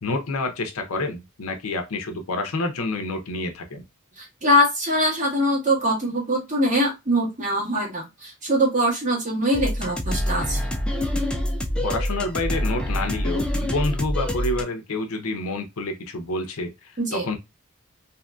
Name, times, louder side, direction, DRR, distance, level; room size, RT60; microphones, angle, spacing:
voice 1, 0.0-3.8 11.8-17.4, left 2 dB, 75° left, 0.6 m, -28 dB
voice 2, 4.2-10.6 17.0-17.3, equal, 35° right, 1.3 m, -23 dB
sound 1, 9.5-14.6, left 1 dB, 5° left, 0.3 m, -26 dB
2.8 x 2.6 x 2.2 m
head